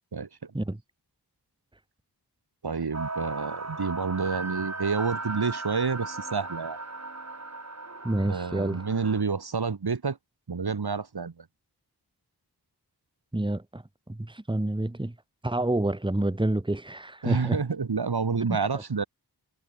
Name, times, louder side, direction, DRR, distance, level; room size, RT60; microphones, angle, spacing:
voice 1, 0.1-0.5 2.6-6.8 8.2-10.2 10.5-11.5 17.2-19.0, right 5 dB, 70° right, 2.5 m, -29 dB
sound 1, 2.9-9.2, right 3 dB, 40° right, 4.6 m, -37 dB
voice 2, 8.0-8.8 13.3-15.1 15.4-17.6 18.5-18.6, right 1 dB, 10° right, 1.6 m, -28 dB
wide cardioid pair, 75°, 40 cm